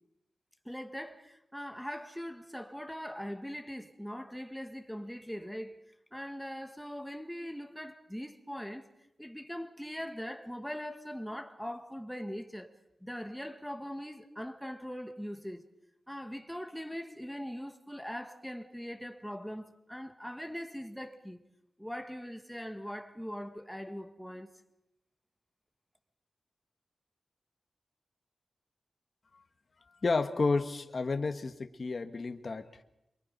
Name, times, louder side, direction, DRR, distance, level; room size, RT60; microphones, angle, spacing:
voice 1, 0.6-5.8 6.1-8.9 9.2-12.7 13.0-15.7 16.1-21.4 21.8-24.5, equal, ahead, 1.8 m, -41 dB
voice 2, 30.0-32.8, left 3 dB, 50° left, 1.3 m, -31 dB
28.0 x 23.5 x 5.3 m
wide cardioid pair, 90°, 0 cm